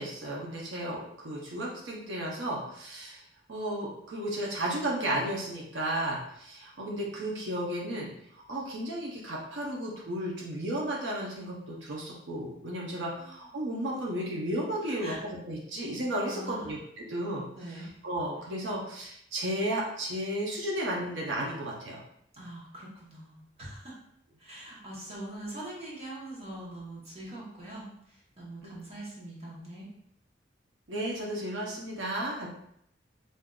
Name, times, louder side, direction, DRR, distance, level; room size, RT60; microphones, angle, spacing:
voice 1, 0.0-3.2 3.5-15.1 15.5-17.4 18.0-22.0 28.6-28.7 30.9-32.5, right 1 dB, 75° right, -3 dB, 0.7 m, -33 dB
voice 2, 13.2-13.6 14.8-15.2 16.3-16.7 17.6-17.9 22.3-24.0 24.4-29.9, right 1 dB, 35° right, -5 dB, 0.9 m, -43 dB
3.6 x 2.6 x 2.3 m, 0.72 s
head